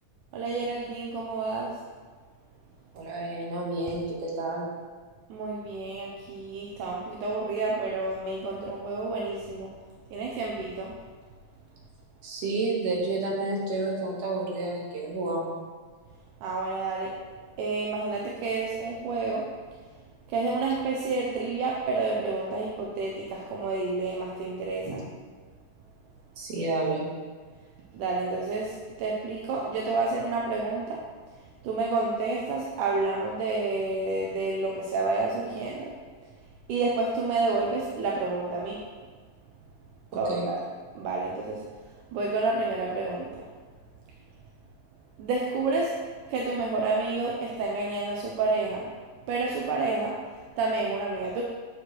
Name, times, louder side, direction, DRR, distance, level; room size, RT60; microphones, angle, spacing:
voice 1, 0.3-1.7 5.3-9.7 10.1-11.0 16.4-17.1 17.6-19.5 20.3-25.0 27.9-31.0 31.3-36.0 36.7-38.8 40.1-41.6 42.1-43.5 45.2-46.0 46.3-48.9 49.3-50.2 50.6-51.4, right 3 dB, 75° right, -2 dB, 2.1 m, -29 dB
voice 2, 2.9-4.7 12.2-15.5 24.9-25.0 26.4-27.1 40.3-40.5, right 2 dB, 55° right, -3 dB, 2.2 m, -30 dB
9.9 x 6.3 x 3.1 m, 1.5 s
omnidirectional pair, 4.0 m